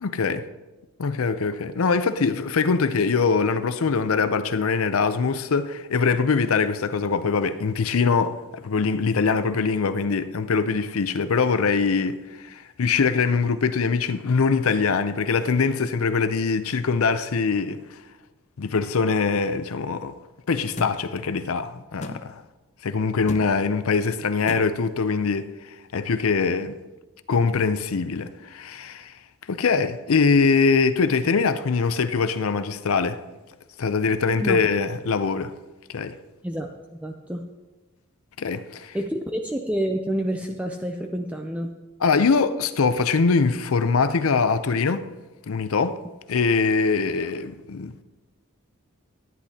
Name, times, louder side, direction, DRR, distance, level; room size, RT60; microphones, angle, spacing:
voice 1, 0.0-0.4 1.0-12.2 12.5-17.8 18.6-20.1 20.5-22.3 22.8-25.5 25.9-26.8 27.3-29.1 29.5-33.2 33.8-35.5 35.9-36.1 38.4-39.0 42.0-45.1 45.5-46.0 46.3-48.0, left 5 dB, 85° left, 0.6 m, -23 dB
sound 1, 20.8-20.9 22.0-22.2 23.3-23.5 24.5-24.6, left 2 dB, 35° left, 0.6 m, -33 dB
voice 2, 36.4-37.4 38.9-41.7, right 1 dB, 5° right, 0.4 m, -28 dB
13.5 x 10.0 x 2.8 m
head